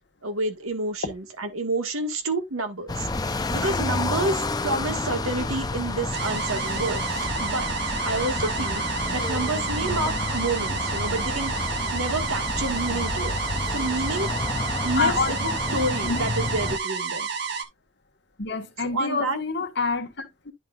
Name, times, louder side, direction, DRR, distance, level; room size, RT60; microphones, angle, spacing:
voice 1, 0.2-7.6 8.0-8.8 9.1-13.3 13.7-14.3 14.8-17.3 18.9-19.4, right 2 dB, 80° right, 1.6 m, -29 dB
sound 1, 2.9-16.8, left 3 dB, 20° left, 0.4 m, -29 dB
sound 2, 6.1-17.6, right 6 dB, 50° right, 1.2 m, -30 dB
voice 2, 15.0-15.6 16.0-16.2 18.4-20.5, left 4 dB, 50° left, 1.3 m, -27 dB
10.5 x 5.4 x 2.3 m
head